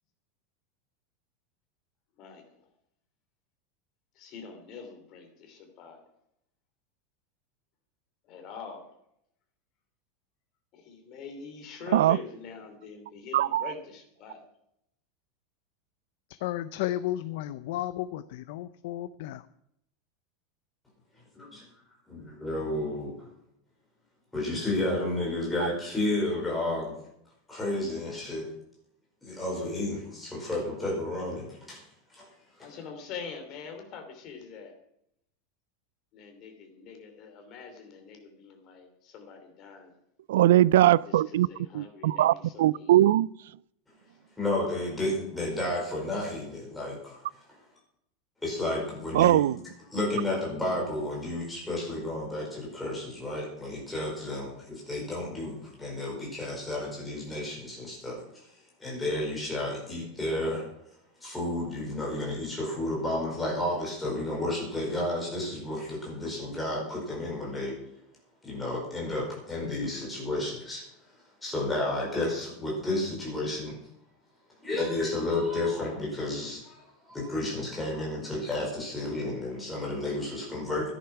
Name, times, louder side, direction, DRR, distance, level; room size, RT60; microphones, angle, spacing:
voice 1, 2.2-2.6 4.1-6.0 8.2-8.9 10.7-14.5 32.6-34.7 36.1-39.9 41.0-43.0, left 5 dB, 30° left, 2.9 m, -44 dB
voice 2, 13.3-13.7 40.3-41.5 41.7-43.3 49.1-49.6, right 14 dB, 90° right, 0.4 m, -21 dB
voice 3, 16.3-19.5, left 13 dB, 55° left, 0.5 m, -33 dB
voice 4, 21.3-21.6 22.1-23.1 24.3-27.0 27.5-28.5 29.2-31.8 32.1-32.3 32.6-32.7 44.4-47.6 48.4-49.4 49.9-60.6 61.2-67.7 68.4-71.1 71.4-73.8 74.6-80.9, left 1 dB, 5° left, 5.0 m, -32 dB
13.5 x 10.5 x 5.9 m
supercardioid pair, 180°, 0 cm